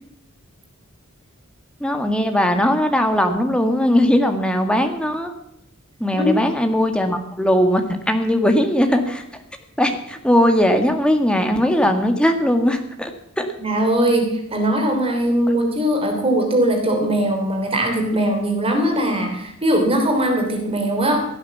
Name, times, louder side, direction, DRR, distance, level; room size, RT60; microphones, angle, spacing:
voice 1, 1.8-5.3 6.0-9.2 9.8-13.1 13.4-13.5 15.5-15.6, equal, 5° left, 5 dB, 1.8 m, -19 dB
voice 2, 6.1-6.4 13.6-21.2, right 1 dB, 25° right, 3 dB, 3.2 m, -20 dB
16.5 x 9.5 x 7.2 m, 0.79 s
head